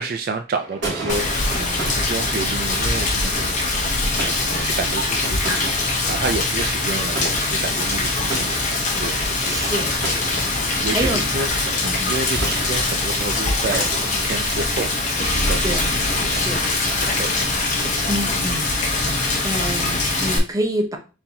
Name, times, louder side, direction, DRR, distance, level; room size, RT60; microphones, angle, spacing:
voice 1, 0.0-5.7 6.1-8.6 9.0-9.6 10.3-10.5 10.8-11.5 11.8-13.9 14.2-16.0 16.2-16.4 17.0-17.3, right 3 dB, 50° right, 6 dB, 0.3 m, -30 dB
sound 1, 0.5-20.0, right 2 dB, 70° right, 2.3 m, -35 dB
Rain, 1.1-20.4, left 2 dB, 40° left, 0.9 m, -22 dB
voice 2, 9.4-9.9 10.8-11.2 12.0-12.2 15.6-15.8 16.3-16.6 18.1-18.7 19.1-21.0, right 1 dB, 20° right, 3 dB, 0.7 m, -27 dB
4.2 x 3.8 x 2.8 m, 0.33 s
head